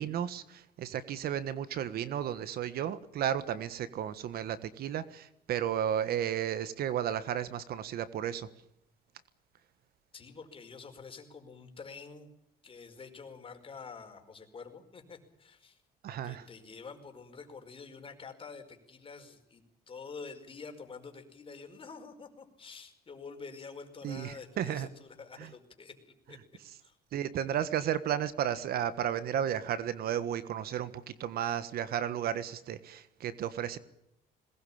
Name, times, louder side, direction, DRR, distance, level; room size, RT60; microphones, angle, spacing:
voice 1, 0.0-8.5 16.0-16.4 24.0-24.9 27.1-33.8, right 10 dB, 65° right, 14 dB, 1.5 m, -33 dB
voice 2, 10.1-12.3 12.6-15.8 16.2-26.4 26.8-27.0, left 5 dB, 30° left, 5 dB, 5.1 m, -48 dB
21.5 x 19.5 x 8.8 m, 0.82 s
cardioid pair, 110°, 17 cm